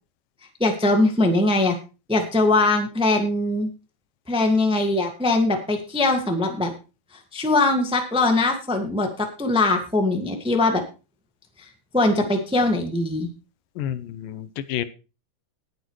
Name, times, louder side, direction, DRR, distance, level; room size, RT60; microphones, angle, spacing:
voice 1, 0.6-1.7 2.1-3.7 4.3-6.7 7.3-10.8 11.9-13.3, left 2 dB, 5° right, 4 dB, 0.4 m, -21 dB
voice 2, 13.8-14.8, left 11 dB, 85° left, 12 dB, 2.5 m, -30 dB
19.5 x 8.1 x 3.1 m, 0.31 s
omnidirectional pair, 3.8 m